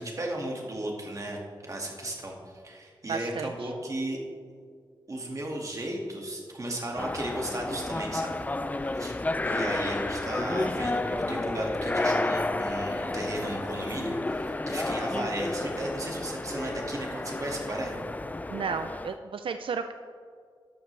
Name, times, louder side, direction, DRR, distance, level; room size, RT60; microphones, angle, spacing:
voice 1, 0.0-4.2 5.1-8.4 8.7-9.2 9.4-18.0, right 1 dB, 40° right, 0 dB, 1.9 m, -35 dB
voice 2, 3.1-3.5 18.5-19.9, right 5 dB, 85° right, 8 dB, 0.4 m, -32 dB
sound 1, 7.0-19.2, left 2 dB, 20° left, 0.3 m, -31 dB
12.5 x 12.0 x 3.3 m, 2.1 s
wide cardioid pair, 110°, 9 cm